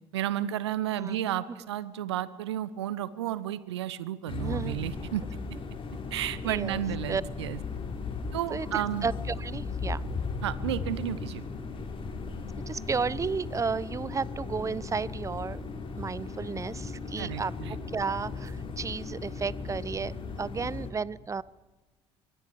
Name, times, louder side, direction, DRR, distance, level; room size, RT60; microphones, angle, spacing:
voice 1, 0.1-5.2 6.1-7.6 8.3-9.1 10.4-11.4 17.2-17.8, right 11 dB, 75° right, 17 dB, 0.9 m, -32 dB
sound 1, 4.3-20.9, left 4 dB, 35° left, 3.6 m, -37 dB
voice 2, 4.4-4.8 6.4-6.8 7.1-7.2 8.5-10.0 12.7-15.6 16.0-17.5 17.9-21.4, right 5 dB, 20° right, 22 dB, 0.6 m, -33 dB
23.5 x 23.0 x 5.0 m, 1.2 s
figure-of-eight pair, 55°, 14 cm